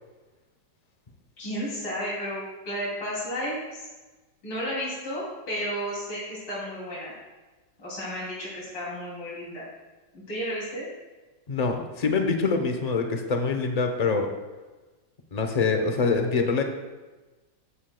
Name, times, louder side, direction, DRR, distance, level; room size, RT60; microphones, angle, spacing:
voice 1, 1.4-3.6 4.4-7.1 7.8-9.7 10.1-10.9, equal, 85° left, -7 dB, 3.6 m, -32 dB
voice 2, 11.5-14.3 15.3-16.6, left 4 dB, 60° left, 4 dB, 0.4 m, -25 dB
14.5 x 9.8 x 2.2 m, 1.2 s
omnidirectional pair, 2.0 m